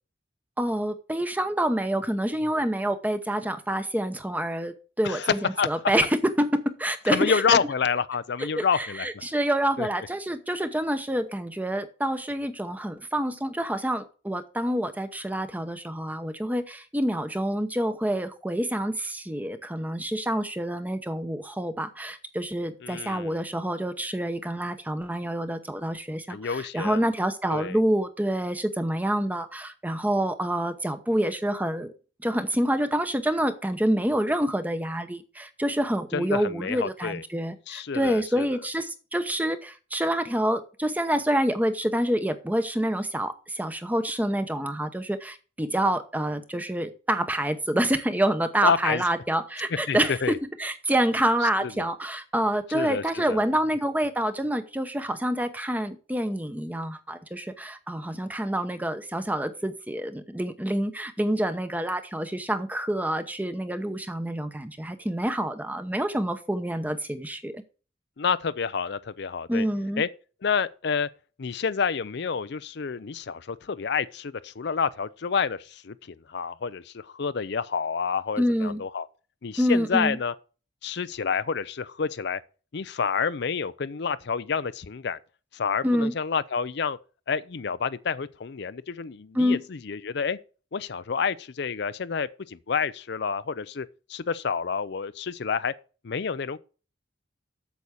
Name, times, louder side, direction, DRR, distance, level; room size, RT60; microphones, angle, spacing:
voice 1, 0.6-7.6 8.4-31.9 32.2-67.6 69.5-70.0 78.4-78.8 79.6-80.2 85.8-86.1 89.3-89.6, right 1 dB, 10° right, 0.9 m, -27 dB
voice 2, 5.0-5.7 7.1-9.1 9.8-9.9 22.8-23.4 26.3-27.0 27.5-27.8 36.1-37.2 37.7-38.6 48.6-49.0 49.9-50.4 51.4-51.8 52.7-53.4 68.2-69.7 70.0-70.1 70.4-71.1 71.4-79.1 79.4-80.3 80.8-82.4 82.7-85.2 85.5-87.0 87.3-90.4 90.7-95.7 96.0-96.6, left 6 dB, 65° left, 0.5 m, -28 dB
8.4 x 7.1 x 6.3 m
head